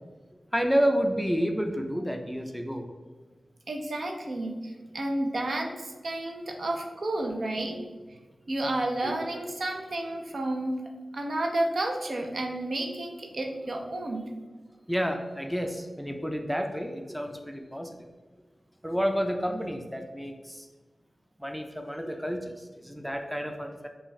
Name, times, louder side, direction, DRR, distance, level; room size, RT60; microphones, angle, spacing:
voice 1, 0.5-2.9 9.0-9.1 14.9-18.1 18.8-20.7 21.4-23.9, equal, ahead, 4 dB, 0.4 m, -30 dB
voice 2, 3.7-7.8 8.1-8.2 8.5-10.7 11.1-14.3, right 1 dB, 70° right, 2 dB, 0.7 m, -31 dB
5.9 x 2.4 x 3.2 m, 1.4 s
cardioid pair, 60°, 0 cm